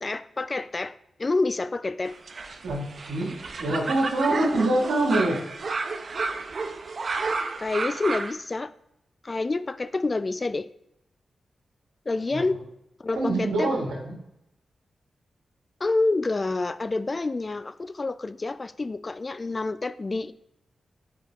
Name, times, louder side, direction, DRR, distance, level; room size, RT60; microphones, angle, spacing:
voice 1, 0.0-0.9 1.2-2.1 7.6-8.7 9.2-10.7 12.1-12.6 13.0-13.7 15.8-20.3, left 3 dB, 40° left, 13 dB, 0.4 m, -28 dB
sound 1, 2.1-8.3, right 4 dB, 60° right, 0.6 m, -32 dB
voice 2, 2.6-5.5 12.3-12.4 13.2-14.2, right 2 dB, 90° right, -3 dB, 1.8 m, -25 dB
8.3 x 5.0 x 2.4 m, 0.84 s
supercardioid pair, 40°, 0 cm